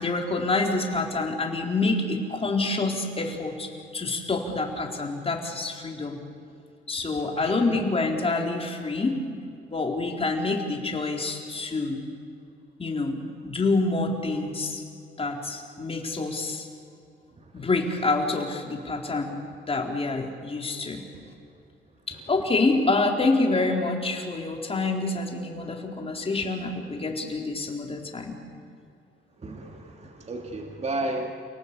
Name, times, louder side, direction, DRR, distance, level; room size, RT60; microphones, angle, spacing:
voice 1, 0.0-6.2 6.9-9.2 9.7-12.1 12.8-14.8 15.2-16.7 17.5-19.4 19.7-21.0 22.1-28.4, left 3 dB, 30° left, 2 dB, 4.2 m, -27 dB
voice 2, 7.0-7.8 17.4-17.7 21.1-21.2 29.4-31.3, right 2 dB, 35° right, 3 dB, 2.6 m, -34 dB
29.0 x 18.5 x 8.6 m, 2.5 s
cardioid pair, 90°, 20 cm